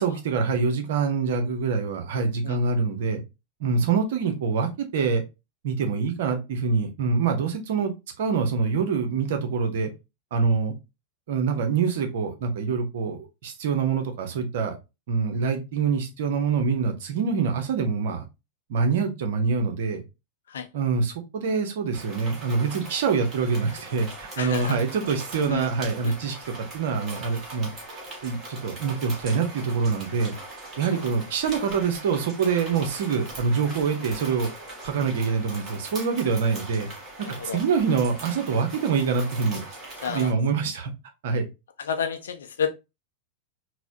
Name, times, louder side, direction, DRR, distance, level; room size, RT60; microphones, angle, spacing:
voice 1, 0.0-3.2 3.6-5.2 5.6-9.9 10.3-10.7 11.3-14.7 15.1-18.2 18.7-20.0 20.7-27.7 28.2-30.3 30.8-34.5 34.8-36.9 37.5-39.6 40.1-40.9 41.2-41.5, right 5 dB, 55° right, 0.7 m, -25 dB
sound 1, 21.9-40.3, right 2 dB, 25° right, 1.5 m, -41 dB
voice 2, 24.4-24.8 25.4-25.7 26.0-26.1 30.9-31.1 37.2-37.6 40.0-40.3 41.8-42.7, left 7 dB, 65° left, 0.5 m, -30 dB
4.0 x 2.1 x 2.6 m
figure-of-eight pair, 90°, 0 cm